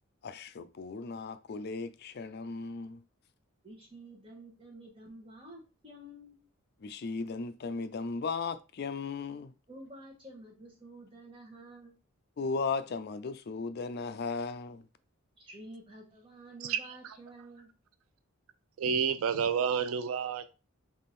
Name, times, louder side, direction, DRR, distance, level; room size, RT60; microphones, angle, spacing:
voice 1, 0.2-3.0 6.8-9.5 12.4-14.8, left 4 dB, 50° left, 0.4 m, -36 dB
voice 2, 3.6-6.5 9.7-12.0 15.4-17.7, right 1 dB, 25° right, 1.6 m, -50 dB
voice 3, 18.8-20.5, right 7 dB, 85° right, 0.4 m, -29 dB
3.6 x 3.3 x 4.2 m
head